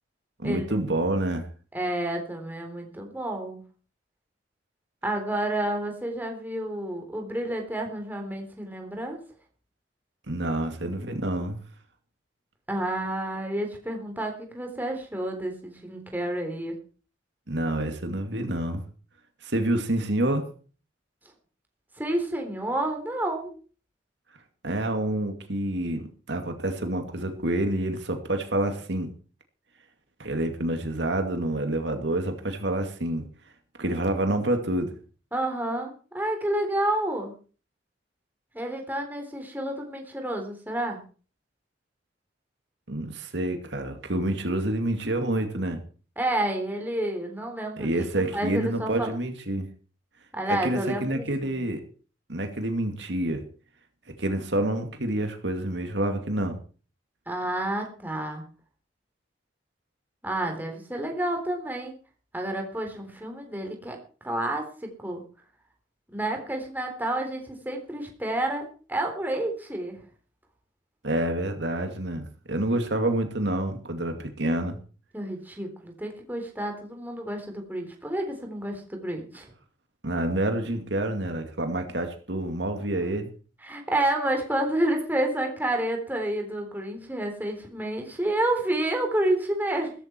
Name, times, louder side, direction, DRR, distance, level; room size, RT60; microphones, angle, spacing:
voice 1, 0.4-1.5 10.3-11.6 17.5-18.8 19.4-20.5 24.6-29.1 30.2-33.2 33.8-34.9 42.9-45.8 47.8-49.7 50.5-51.8 52.3-53.4 54.2-56.6 71.0-74.8 80.0-83.3, right 1 dB, 65° right, 5 dB, 2.4 m, -28 dB
voice 2, 1.7-3.6 5.0-9.2 12.7-16.8 22.0-23.5 35.3-37.3 38.5-41.0 46.2-49.1 50.3-51.6 57.3-58.4 60.2-61.9 62.3-64.0 64.2-65.2 66.1-70.0 75.1-79.5 83.6-89.9, right 1 dB, 10° right, 3 dB, 3.7 m, -29 dB
16.5 x 14.5 x 4.6 m, 0.39 s
head